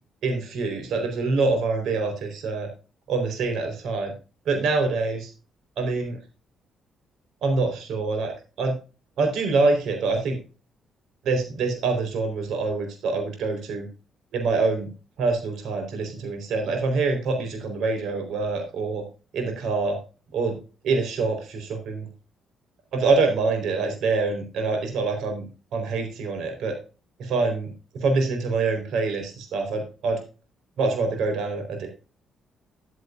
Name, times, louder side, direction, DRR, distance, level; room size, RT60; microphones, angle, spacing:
voice 1, 0.2-2.7 3.1-4.1 4.5-5.3 5.8-6.2 7.4-8.7 9.2-10.4 11.2-13.9 14.3-14.9 15.2-19.0 19.3-20.0 20.3-20.6 20.8-22.1 22.9-25.5 25.7-26.8 27.2-27.7 27.9-30.2 30.8-31.9, right 3 dB, 80° right, 5 dB, 4.2 m, -25 dB
12.0 x 9.7 x 2.5 m, 0.33 s
cardioid pair, 90°, 0 cm